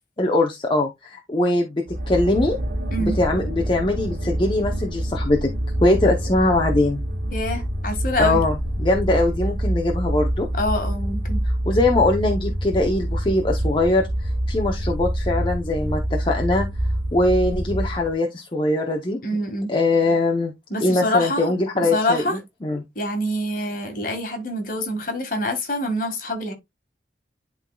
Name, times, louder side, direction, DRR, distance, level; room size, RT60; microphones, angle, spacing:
voice 1, 0.2-2.6 3.0-5.5 5.8-7.0 8.2-10.5 11.7-16.7 17.1-19.2 19.7-20.5 20.8-22.8, left 2 dB, 25° left, 0.7 m, -21 dB
sound 1, 1.9-18.1, right 1 dB, 75° right, 1.6 m, -26 dB
voice 2, 7.3-8.4 10.6-11.4 19.2-19.7 20.7-22.4 23.0-26.5, left 1 dB, 50° left, 1.8 m, -26 dB
11.5 x 3.8 x 2.3 m
head